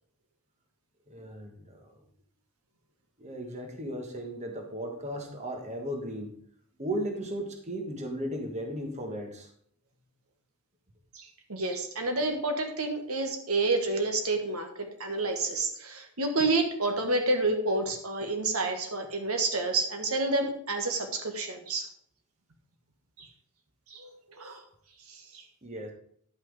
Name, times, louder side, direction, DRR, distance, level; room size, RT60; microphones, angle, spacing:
voice 1, 1.1-2.0 3.2-6.3 6.8-9.5 25.6-25.9, equal, 30° right, 3 dB, 1.5 m, -36 dB
voice 2, 11.1-14.7 15.0-21.9 23.2-23.3 23.9-24.6 25.1-25.4, right 2 dB, 80° right, 5 dB, 1.6 m, -29 dB
11.0 x 5.9 x 4.8 m, 0.63 s
head